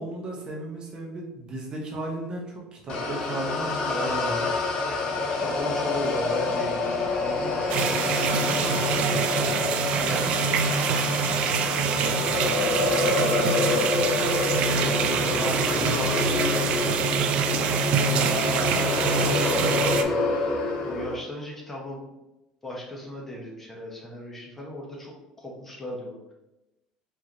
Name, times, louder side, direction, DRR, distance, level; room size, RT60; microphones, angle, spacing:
voice 1, 0.0-4.5 14.5-16.0 17.9-19.3, right 1 dB, 40° right, -1 dB, 1.1 m, -35 dB
sound 1, 2.9-21.2, left 3 dB, 45° left, 1.0 m, -27 dB
voice 2, 3.8-4.3 5.4-8.2 10.0-14.2 14.8-17.2 18.9-20.5 20.8-22.1 22.6-26.3, equal, 15° left, -2 dB, 1.2 m, -37 dB
sound 2, 7.7-20.0, right 6 dB, 60° right, 0.4 m, -25 dB
4.8 x 2.9 x 3.0 m, 0.97 s
supercardioid pair, 100°, 2 cm